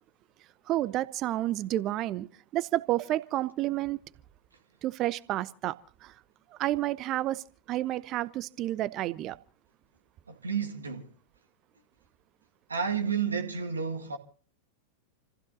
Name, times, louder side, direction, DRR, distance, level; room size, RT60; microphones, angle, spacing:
voice 1, 0.7-4.0 4.8-5.8 6.0-6.1 6.6-9.4, right 15 dB, 35° right, 0.9 m, -30 dB
voice 2, 10.3-11.1 12.7-14.2, right 6 dB, 75° right, 2.0 m, -31 dB
29.0 x 15.5 x 2.8 m
figure-of-eight pair, 90°, 0 cm